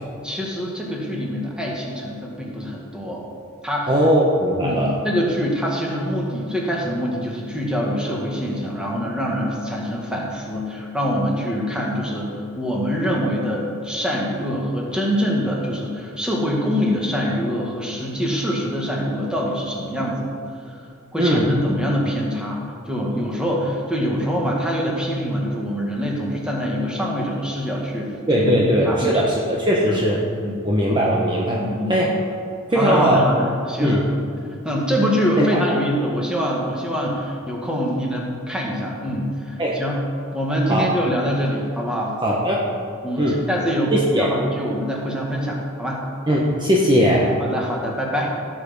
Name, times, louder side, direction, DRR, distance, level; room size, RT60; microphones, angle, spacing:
voice 1, 0.2-3.2 3.6-3.9 4.6-12.3 12.6-20.3 20.7-20.8 21.1-29.2 30.4-30.6 31.5-31.9 32.7-34.0 34.6-40.0 40.3-42.2 43.0-46.1 47.4-48.3, equal, 5° right, -3 dB, 2.1 m, -24 dB
voice 2, 3.9-5.0 21.2-21.5 28.3-30.2 30.6-31.6 31.9-32.1 32.7-33.2 33.8-34.0 35.4-35.6 39.6-39.8 40.7-40.9 42.2-42.7 43.2-43.4 43.9-44.3 46.3-47.3, equal, 25° right, -3 dB, 1.2 m, -19 dB
16.0 x 7.6 x 5.4 m, 2.5 s
head